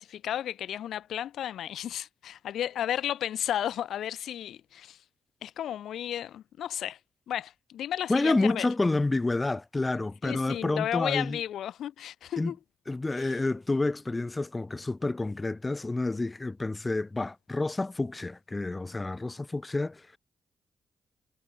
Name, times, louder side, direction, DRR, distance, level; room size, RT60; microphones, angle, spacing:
voice 1, 0.0-5.0 5.4-7.0 7.3-8.7 10.2-12.6 13.2-13.4, left 10 dB, 80° left, 0.5 m, -33 dB
voice 2, 8.1-11.4 12.4-12.5 12.9-20.2, left 2 dB, 25° left, 1.3 m, -29 dB
cardioid pair, 60°, 0 cm